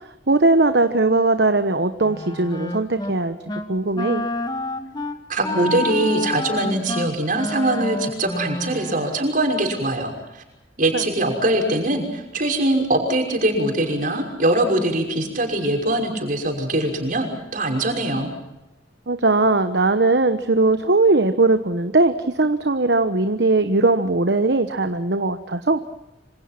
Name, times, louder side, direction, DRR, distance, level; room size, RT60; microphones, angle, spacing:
voice 1, 0.3-4.3 10.9-11.0 19.1-25.8, right 2 dB, 60° right, 9 dB, 1.2 m, -19 dB
Wind instrument woodwind instrument, 2.0-3.2 3.5-3.7 4.0-9.2, left 2 dB, 25° left, 2.0 m, -29 dB
voice 2, 5.3-10.1 10.8-18.3, right 1 dB, 45° right, 3 dB, 5.9 m, -22 dB
27.0 x 26.0 x 6.1 m, 0.94 s
head